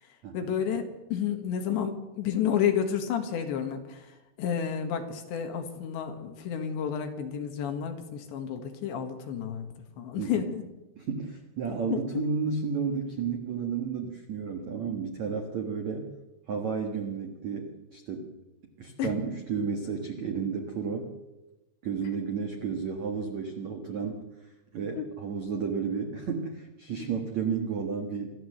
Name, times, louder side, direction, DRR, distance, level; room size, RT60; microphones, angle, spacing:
voice 1, 0.3-10.6 11.9-12.3 19.0-19.1 25.0-25.1 27.0-27.1, left 8 dB, 65° left, 6 dB, 3.7 m, -31 dB
voice 2, 11.0-16.1 16.5-18.3 18.8-21.1 21.8-24.2 24.7-28.3, right 5 dB, 70° right, 4 dB, 1.7 m, -32 dB
25.5 x 14.0 x 8.0 m, 1.1 s
omnidirectional pair, 5.9 m